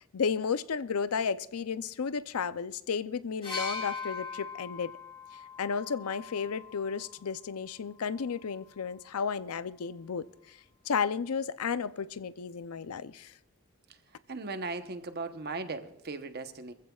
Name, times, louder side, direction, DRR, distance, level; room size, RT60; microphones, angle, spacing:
voice 1, 0.1-4.9 5.6-10.6 10.8-13.3, left 6 dB, 85° left, 0.5 m, -33 dB
sound 1, 3.4-7.2 8.3-8.4, left 5 dB, 25° left, 3.1 m, -40 dB
voice 2, 14.3-16.7, right 3 dB, 45° right, 0.9 m, -37 dB
24.0 x 15.0 x 2.4 m
head